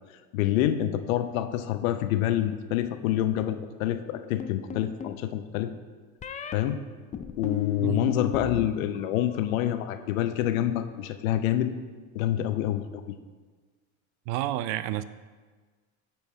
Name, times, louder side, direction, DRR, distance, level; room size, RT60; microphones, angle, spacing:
voice 1, 0.3-5.7 6.5-6.8 7.4-11.7 12.1-13.0, left 12 dB, 80° left, 9 dB, 0.7 m, -27 dB
sound 1, 4.4-5.2 6.2-6.5 7.1-8.7 8.9-9.5, left 8 dB, 20° left, 0.4 m, -35 dB
voice 2, 7.8-8.1 14.3-15.0, right 14 dB, 60° right, 14 dB, 0.5 m, -30 dB
8.8 x 4.5 x 4.5 m, 1.4 s
hypercardioid pair, 90°, 40 cm